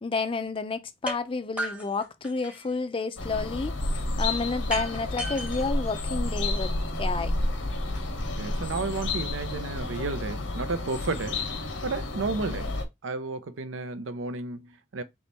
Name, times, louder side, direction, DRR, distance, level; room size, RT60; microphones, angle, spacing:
voice 1, 0.0-3.7 4.2-7.4, left 4 dB, 30° left, 0.4 m, -30 dB
sound 1, 1.1-1.2 1.6-2.8 4.7-6.7, equal, 5° right, 0.8 m, -36 dB
sound 2, 3.2-12.8, left 2 dB, 85° left, 1.1 m, -30 dB
voice 2, 8.3-11.5 11.8-15.0, right 3 dB, 90° right, 0.6 m, -32 dB
3.5 x 3.0 x 4.0 m
head